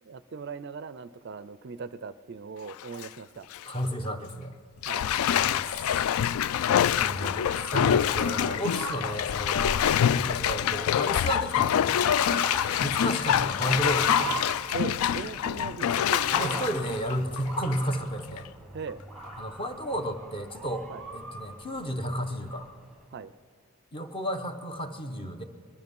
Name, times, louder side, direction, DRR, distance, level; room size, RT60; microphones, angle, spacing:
voice 1, 0.0-3.5 4.8-5.1 8.8-8.9 11.2-11.3 12.3-12.4 14.7-16.7 18.7-19.0 20.9-21.0 23.1-23.3, right 5 dB, 50° right, 15 dB, 0.4 m, -39 dB
Bathtub (filling or washing), 2.7-3.1 3.5-3.6 4.8-17.9 18.4-18.5, left 9 dB, 80° left, 0.3 m, -26 dB
voice 2, 3.7-4.5 5.3-5.9 7.0-12.0 12.8-14.4 16.3-18.5 19.4-20.9 21.1-22.7 23.9-25.4, equal, 25° left, 7 dB, 0.9 m, -32 dB
Motor vehicle (road) / Siren, 7.4-23.0, right 1 dB, ahead, 1.1 m, -41 dB
21.0 x 12.0 x 5.4 m, 2.2 s
head